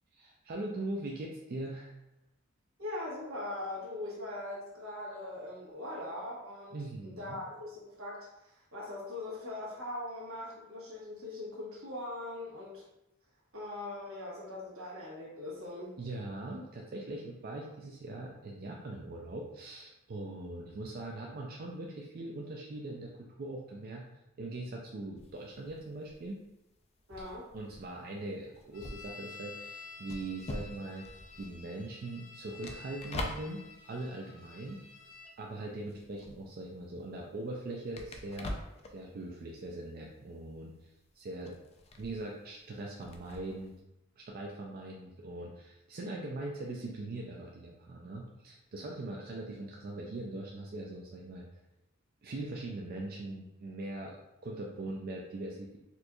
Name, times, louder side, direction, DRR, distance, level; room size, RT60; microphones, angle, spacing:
voice 1, 0.1-1.9 6.7-7.4 16.0-24.1 24.4-26.4 27.5-31.1 31.3-34.8 35.4-38.6 38.9-40.9 41.1-41.6 42.0-43.7 44.2-51.4 52.2-55.8, right 2 dB, 45° right, -1 dB, 0.4 m, -41 dB
voice 2, 2.8-12.8 13.5-15.9 27.1-27.5, left 1 dB, 85° right, -5 dB, 1.2 m, -41 dB
sound 1, 25.2-35.4 35.6-43.8, left 1 dB, 30° left, 0.3 m, -45 dB
sound 2, 28.7-35.3, left 5 dB, 80° left, 0.8 m, -51 dB
4.3 x 2.6 x 2.3 m, 0.88 s
head